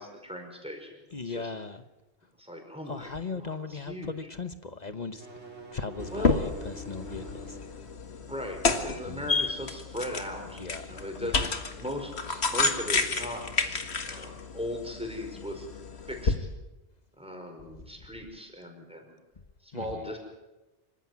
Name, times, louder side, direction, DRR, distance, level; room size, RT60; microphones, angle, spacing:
voice 1, 0.0-1.0 1.3-1.5 2.4-4.1 6.1-6.4 8.3-11.5 11.8-12.1 12.5-15.7 16.1-16.4 17.2-19.1 19.6-20.2, left 1 dB, 5° right, 5.4 m, -38 dB
voice 2, 1.1-1.8 2.8-5.3 5.7-7.8 9.0-9.4 10.4-11.5 12.3-12.4 19.7-20.1, left 4 dB, 40° left, 1.1 m, -39 dB
sound 1, 5.0-7.8, left 1 dB, 80° right, 4.1 m, -44 dB
sound 2, 6.0-16.4, left 4 dB, 70° left, 2.0 m, -31 dB
26.0 x 15.0 x 9.7 m
omnidirectional pair, 1.1 m